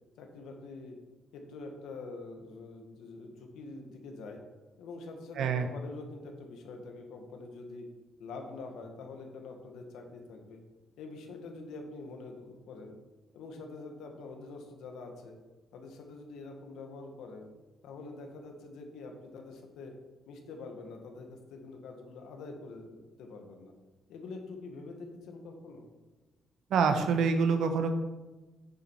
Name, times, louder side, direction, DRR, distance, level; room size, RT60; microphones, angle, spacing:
voice 1, 0.2-1.0 1.3-4.4 4.8-7.9 8.2-10.6 11.0-13.0 13.3-15.3 15.7-17.5 17.8-19.9 20.3-23.7 24.1-25.9, left 3 dB, 85° left, 3 dB, 1.8 m, -45 dB
voice 2, 5.4-5.7 26.7-27.9, right 5 dB, 75° right, 7 dB, 1.2 m, -26 dB
9.8 x 7.3 x 4.8 m, 1.2 s
cardioid pair, 90°, 0 cm